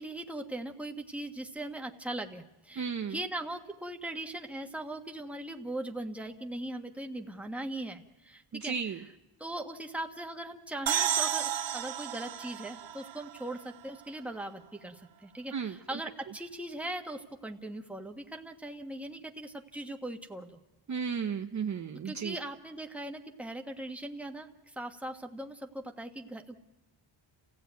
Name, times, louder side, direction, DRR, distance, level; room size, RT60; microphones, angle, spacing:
voice 1, 0.0-9.0 9.4-20.6 22.0-26.6, right 1 dB, 5° right, 4 dB, 1.4 m, -40 dB
voice 2, 2.8-3.2 8.5-9.0 15.5-15.8 20.9-22.4, right 6 dB, 35° right, 6 dB, 0.7 m, -34 dB
sound 1, 10.9-14.4, right 10 dB, 65° right, 1.1 m, -33 dB
30.0 x 15.5 x 9.3 m, 1.0 s
wide cardioid pair, 160°, 48 cm